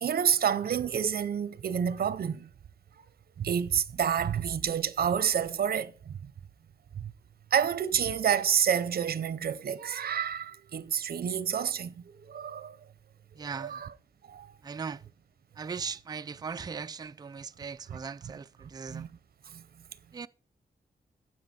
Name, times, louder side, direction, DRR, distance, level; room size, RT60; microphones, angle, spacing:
voice 1, 0.0-2.5 3.4-6.3 7.0-7.1 7.5-11.9 12.3-12.8 13.6-13.9 14.3-14.5 17.9-18.0 18.9-19.1 19.5-19.6, right 8 dB, 70° right, 0.6 m, -29 dB
voice 2, 13.4-13.8 14.6-15.0 15.6-19.1 20.1-20.3, right 5 dB, 25° right, 0.3 m, -39 dB
9.5 x 7.6 x 4.2 m
wide cardioid pair, 135°, 17 cm